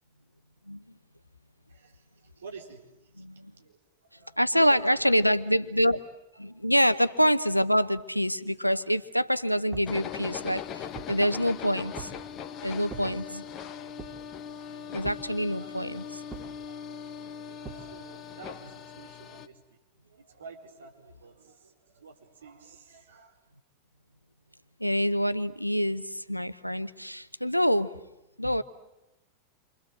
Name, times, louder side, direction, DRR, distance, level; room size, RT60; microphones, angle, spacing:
voice 1, 1.7-2.8 3.2-3.3 3.6-3.8 4.1-5.1 6.4-6.5 15.6-16.0 16.3-23.4, right 5 dB, 65° right, 1 dB, 4.5 m, -50 dB
voice 2, 3.2-3.5 4.4-6.0 6.4-10.6 11.1-12.1 12.6-13.4 14.9-16.0 24.8-27.9 28.4-28.6, equal, 90° left, 14 dB, 0.9 m, -26 dB
sound 1, 9.7-10.0 10.5-11.2 12.0-12.3 12.9-13.1 14.0-14.3 15.0-15.3 16.3-16.6 17.6-17.9, right 6 dB, 20° right, 3.3 m, -43 dB
sound 2, 9.9-19.5, left 8 dB, 35° left, 1.5 m, -40 dB
28.5 x 25.0 x 7.7 m, 0.94 s
figure-of-eight pair, 90°, 0 cm